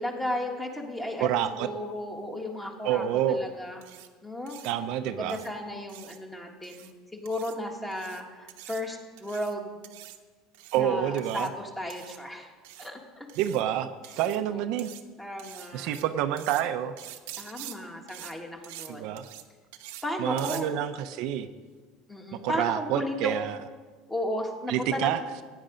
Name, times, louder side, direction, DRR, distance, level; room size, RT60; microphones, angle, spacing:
voice 1, 0.0-3.8 4.2-4.6 5.0-9.8 10.7-12.5 12.8-13.3 14.5-14.6 15.2-15.9 17.4-19.1 20.0-20.8 22.1-23.4 24.1-25.1, left 1 dB, 10° left, 2 dB, 1.7 m, -34 dB
voice 2, 1.2-1.7 2.8-3.4 4.6-5.4 10.7-11.5 13.4-13.9 14.2-14.9 15.7-16.9 18.9-19.3 20.2-21.5 22.4-23.6 24.7-25.2, right 11 dB, 60° right, 8 dB, 0.6 m, -28 dB
sound 1, 3.8-4.1 4.5-4.7 5.3-5.5 5.9-6.2 6.6-6.9 7.3-7.5 7.9-8.2 8.5-8.8 9.2-9.5 9.8-10.2 10.5-10.8 11.2-11.5 11.9-12.2 12.6-12.9 13.3-13.6 14.0-14.4 14.8-15.0 15.4-16.0 16.4-16.6 17.0-17.7 18.1-18.3 18.6-18.9 19.2-19.4 19.7-20.0 20.4-20.6, right 14 dB, 90° right, 1.0 m, -45 dB
15.5 x 9.9 x 5.2 m, 1.4 s
cardioid pair, 150°, 0 cm